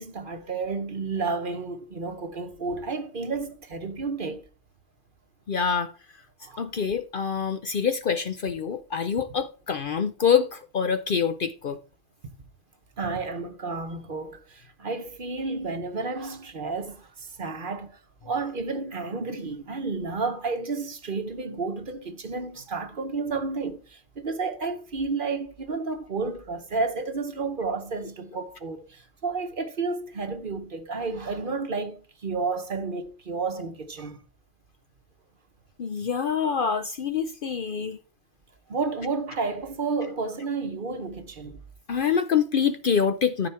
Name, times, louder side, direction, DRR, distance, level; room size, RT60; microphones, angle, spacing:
voice 1, 0.0-4.4 6.4-6.6 13.0-17.9 18.2-34.2 38.7-41.6, right 4 dB, 45° right, 1.1 m, -31 dB
voice 2, 5.5-5.9 6.6-11.8 35.8-38.0 41.9-43.5, left 7 dB, 55° left, 0.7 m, -25 dB
13.0 x 4.9 x 4.4 m
omnidirectional pair, 1.3 m